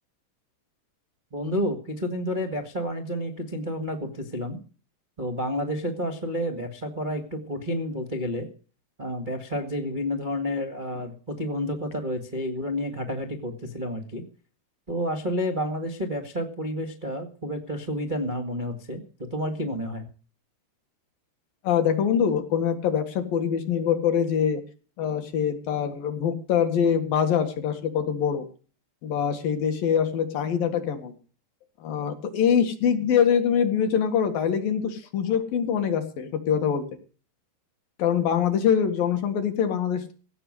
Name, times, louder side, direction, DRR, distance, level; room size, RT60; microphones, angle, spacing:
voice 1, 1.3-4.6 5.2-8.5 9.0-14.2 14.9-19.0 19.3-20.1, equal, 35° right, 3 dB, 0.7 m, -30 dB
voice 2, 21.6-24.6 25.0-28.5 29.0-31.2 31.8-36.8 38.0-40.1, left 8 dB, 60° left, 7 dB, 3.3 m, -24 dB
16.5 x 6.9 x 8.0 m, 0.38 s
omnidirectional pair, 4.9 m